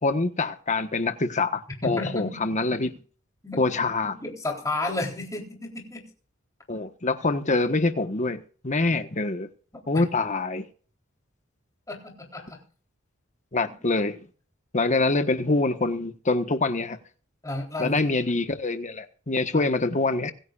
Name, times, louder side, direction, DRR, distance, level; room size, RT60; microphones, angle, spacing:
voice 1, 0.0-2.9 3.6-4.2 6.7-9.5 9.9-10.7 13.5-14.2 14.7-17.0 17.8-20.3, left 3 dB, 35° left, 1.3 m, -25 dB
voice 2, 1.8-2.6 3.4-6.1 9.7-10.0 11.9-12.6 13.6-13.7 17.4-18.2 19.5-19.6, left 2 dB, 15° left, 3.8 m, -33 dB
25.0 x 10.0 x 2.5 m
head